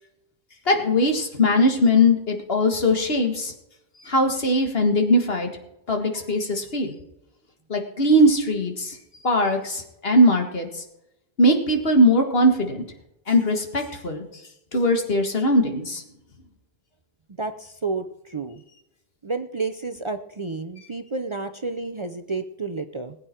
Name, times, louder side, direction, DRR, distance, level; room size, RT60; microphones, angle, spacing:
voice 1, 0.7-3.5 4.0-5.5 5.9-6.9 7.7-9.0 9.2-10.8 11.4-12.8 13.3-14.2 14.7-16.0, left 1 dB, 65° left, 4 dB, 2.0 m, -20 dB
voice 2, 17.4-18.6 19.2-23.2, right 3 dB, 35° right, 7 dB, 0.6 m, -30 dB
20.5 x 8.6 x 4.5 m, 0.85 s
omnidirectional pair, 1.1 m